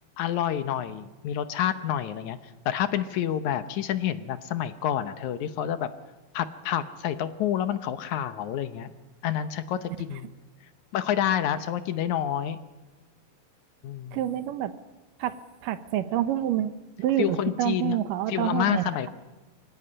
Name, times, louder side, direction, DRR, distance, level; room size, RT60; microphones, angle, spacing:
voice 1, 0.2-2.4 2.7-5.9 6.3-8.9 9.2-10.3 10.9-12.6 13.8-14.2 17.2-18.0 18.3-19.1, left 10 dB, 70° left, 11 dB, 1.9 m, -28 dB
voice 2, 14.1-14.7 15.2-15.4 15.6-16.7 17.0-19.1, right 11 dB, 75° right, 12 dB, 2.4 m, -27 dB
24.0 x 16.5 x 9.8 m, 1.2 s
omnidirectional pair, 4.1 m